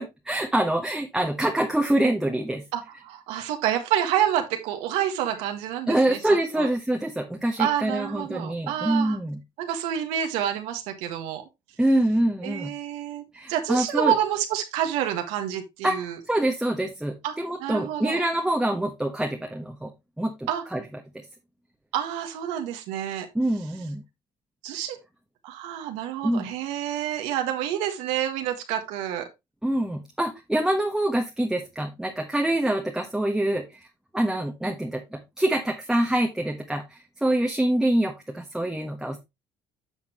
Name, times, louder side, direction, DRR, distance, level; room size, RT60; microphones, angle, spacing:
voice 1, 0.0-2.6 5.9-9.4 11.8-12.7 13.3-14.1 15.8-19.9 20.2-20.8 21.1-21.2 23.3-24.0 26.2-26.5 29.6-33.9 34.1-39.2, right 1 dB, 5° right, 3 dB, 1.2 m, -25 dB
voice 2, 2.7-6.7 7.6-9.2 9.6-11.4 12.4-13.2 13.5-16.2 17.2-17.3 17.6-18.2 20.5-20.6 21.9-23.3 24.6-25.0 25.4-29.3, right 10 dB, 85° right, 5 dB, 1.5 m, -28 dB
9.9 x 6.0 x 3.0 m, 0.22 s
supercardioid pair, 85°, 11 cm